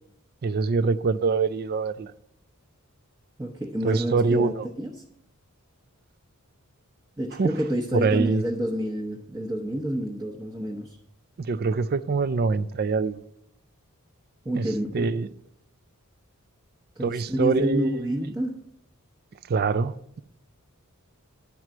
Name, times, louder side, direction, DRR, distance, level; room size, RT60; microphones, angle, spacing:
voice 1, 0.4-2.1 3.8-4.7 7.4-7.5 7.9-8.4 11.4-13.2 14.6-14.7 14.9-15.3 17.0-18.3 19.5-20.2, right 4 dB, 45° right, 0.4 m, -24 dB
voice 2, 3.4-5.0 7.2-11.0 14.4-15.1 17.0-18.6, equal, 15° right, 0.9 m, -29 dB
10.5 x 4.7 x 7.5 m
head